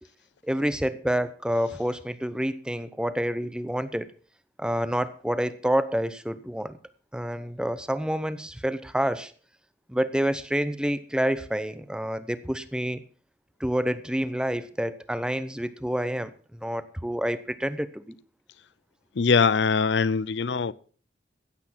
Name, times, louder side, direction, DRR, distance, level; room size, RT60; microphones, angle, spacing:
voice 1, 0.4-4.1 4.6-6.8 7.1-9.3 9.9-13.0 13.6-16.3 16.6-18.1, equal, 5° right, 0.7 m, -28 dB
voice 2, 19.2-20.7, left 5 dB, 80° left, 0.6 m, -22 dB
15.5 x 8.2 x 5.8 m
head